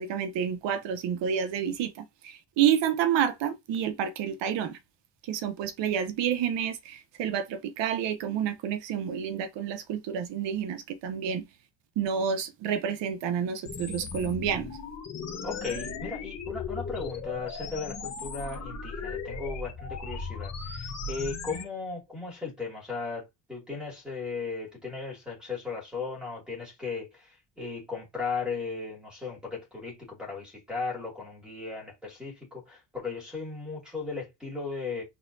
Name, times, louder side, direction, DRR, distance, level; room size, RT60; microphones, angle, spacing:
voice 1, 0.0-4.8 5.2-11.5 12.0-14.7, right 8 dB, 85° right, 1.0 m, -29 dB
sound 1, 13.6-21.6, left 4 dB, 40° left, 1.1 m, -37 dB
voice 2, 15.4-35.0, left 4 dB, ahead, 2.4 m, -36 dB
4.0 x 3.7 x 2.7 m
cardioid pair, 175°, 42 cm